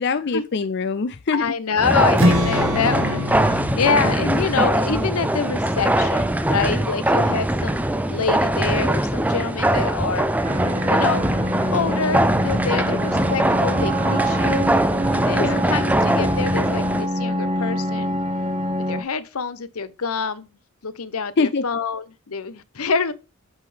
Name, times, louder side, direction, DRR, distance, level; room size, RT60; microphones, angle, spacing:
voice 1, 0.0-1.5 15.3-15.7 21.4-21.6, left 4 dB, 50° left, 0.5 m, -23 dB
voice 2, 1.3-10.3 10.9-11.3 11.7-14.7 15.1-18.2 18.9-20.5 20.8-23.1, left 5 dB, 80° left, 0.9 m, -26 dB
sound 1, 1.8-17.1, right 1 dB, 5° right, 0.5 m, -22 dB
Strum, 2.2-6.3, left 1 dB, 65° right, 2.0 m, -26 dB
sound 2, 10.4-19.0, equal, 30° right, 1.1 m, -25 dB
8.1 x 5.7 x 3.4 m
head